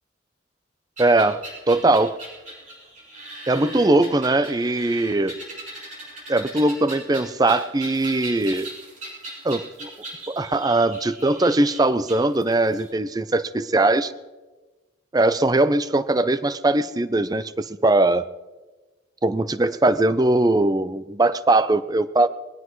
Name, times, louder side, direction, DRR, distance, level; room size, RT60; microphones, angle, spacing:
voice 1, 1.0-2.2 3.5-5.4 6.3-8.7 9.4-9.9 10.3-14.1 15.1-18.3 19.2-22.3, right 2 dB, 20° right, 14 dB, 0.4 m, -20 dB
sound 1, 1.0-12.8, right 1 dB, 40° right, 6.2 m, -39 dB
22.0 x 17.5 x 3.1 m, 1.2 s
head